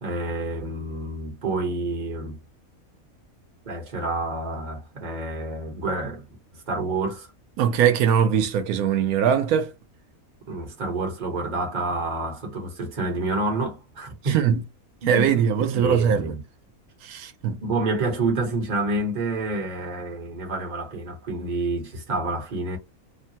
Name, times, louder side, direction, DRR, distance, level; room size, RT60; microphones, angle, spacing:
voice 1, 0.0-2.4 3.6-6.2 6.5-7.3 10.5-14.4 15.0-15.4 15.7-16.4 17.6-22.8, right 2 dB, 35° right, 1.1 m, -28 dB
voice 2, 7.6-9.7 14.2-14.6 15.1-16.3 17.0-17.6, right 8 dB, 90° right, 1.1 m, -21 dB
3.1 x 2.1 x 2.7 m
omnidirectional pair, 1.5 m